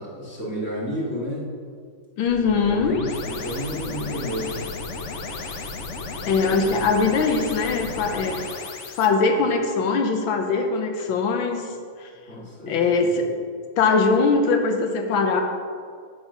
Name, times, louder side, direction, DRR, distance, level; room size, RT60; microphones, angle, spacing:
voice 1, 0.0-1.5 2.6-4.7 6.2-6.7 12.3-13.1, equal, 35° left, -5 dB, 2.5 m, -31 dB
voice 2, 2.2-3.0 6.3-8.4 8.9-11.7 12.0-12.1 12.7-13.3 13.8-15.4, left 4 dB, 75° left, 5 dB, 1.7 m, -21 dB
sound 1, 2.3-9.1, left 3 dB, 55° left, 0.8 m, -34 dB
8.6 x 7.8 x 5.7 m, 2.1 s
omnidirectional pair, 2.3 m